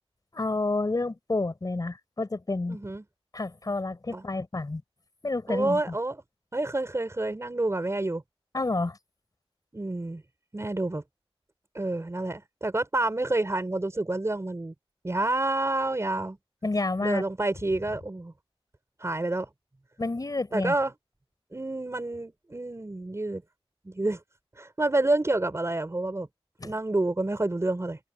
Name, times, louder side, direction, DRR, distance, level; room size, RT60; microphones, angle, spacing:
voice 1, 0.3-2.8 3.3-4.8 5.2-5.9 8.5-9.0 16.6-17.2 20.0-20.7 26.6-26.7, left 2 dB, 40° left, 5.4 m, -29 dB
voice 2, 2.7-3.0 4.1-4.2 5.5-6.2 6.5-8.2 9.7-10.2 10.5-11.0 11.7-14.7 15.0-16.4 17.0-18.3 19.0-19.5 20.5-20.9 21.5-23.4 23.8-24.2 24.6-26.3 26.6-28.0, right 2 dB, 25° right, 5.7 m, -28 dB
wide cardioid pair, 105°, 10 cm